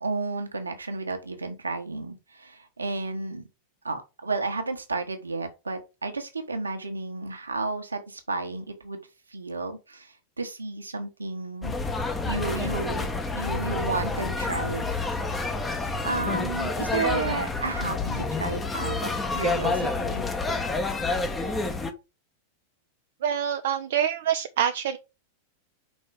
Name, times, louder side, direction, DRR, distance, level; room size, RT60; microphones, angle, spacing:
voice 1, 0.0-3.5 3.8-9.0 9.3-14.9 15.8-20.3, right 3 dB, 80° right, 1.3 m, -32 dB
sound 1, 11.6-21.9, left 3 dB, 15° left, 1.1 m, -28 dB
voice 2, 23.2-25.0, right 9 dB, 55° right, 0.6 m, -26 dB
5.4 x 4.2 x 5.0 m
figure-of-eight pair, 90°, 0 cm